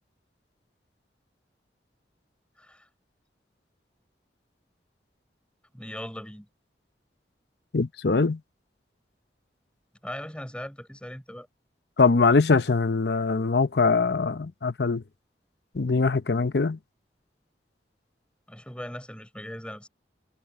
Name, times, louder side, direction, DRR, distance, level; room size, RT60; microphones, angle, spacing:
voice 1, 2.6-2.9 5.7-6.5 10.0-11.5 18.5-19.9, equal, 5° left, 5.7 m, -39 dB
voice 2, 7.7-8.4 12.0-15.0 15.7-16.8, left 4 dB, 70° left, 0.7 m, -22 dB
head